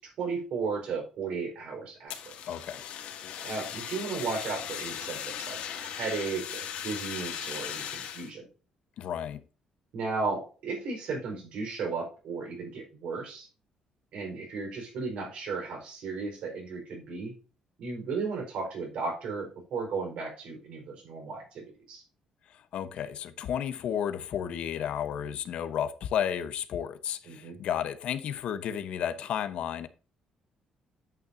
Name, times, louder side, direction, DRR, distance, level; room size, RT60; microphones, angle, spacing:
voice 1, 0.0-2.3 3.4-8.5 9.9-13.5 14.1-17.3 17.8-22.0 27.3-27.6, right 4 dB, 60° right, 4.5 m, -35 dB
Fire, 2.1-8.3, left 9 dB, 75° left, 2.2 m, -38 dB
voice 2, 2.5-2.8 9.0-9.4 22.7-29.9, left 9 dB, 60° left, 0.9 m, -32 dB
9.4 x 8.7 x 2.6 m
cardioid pair, 170°, 2 cm